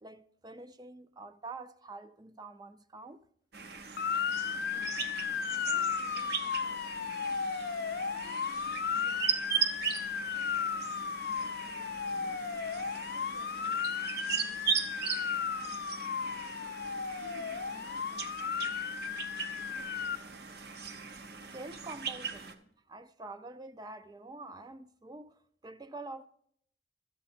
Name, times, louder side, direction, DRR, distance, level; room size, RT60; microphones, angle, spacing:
voice 1, 0.0-3.2 21.5-25.4 25.6-26.3, right 3 dB, 20° right, 0.3 m, -46 dB
sound 1, 3.5-22.5, right 7 dB, 50° right, 0.8 m, -38 dB
Motor vehicle (road) / Siren, 4.0-20.2, left 7 dB, 50° left, 0.4 m, -35 dB
voice 2, 4.3-7.6 8.2-12.4 13.1-16.5 17.2-20.2, equal, 70° right, 1.2 m, -57 dB
12.5 x 7.9 x 4.3 m
head